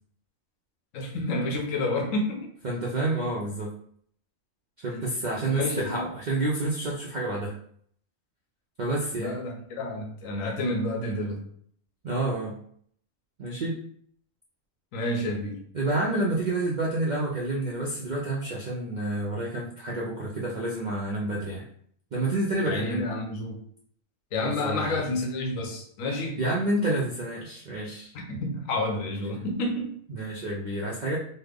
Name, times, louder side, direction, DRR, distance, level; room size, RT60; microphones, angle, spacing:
voice 1, 0.9-2.5 4.9-5.0 5.5-6.1 9.1-11.5 14.9-15.6 22.7-23.6 24.3-26.4 28.1-30.0, left 2 dB, 85° left, 3 dB, 1.1 m, -30 dB
voice 2, 2.6-3.7 4.8-7.5 8.8-9.3 12.0-12.5 13.4-13.8 15.7-21.6 22.1-23.1 24.4-25.0 26.4-28.1 30.1-31.2, right 2 dB, 65° right, -4 dB, 0.4 m, -29 dB
3.3 x 2.0 x 3.4 m, 0.62 s
omnidirectional pair, 1.4 m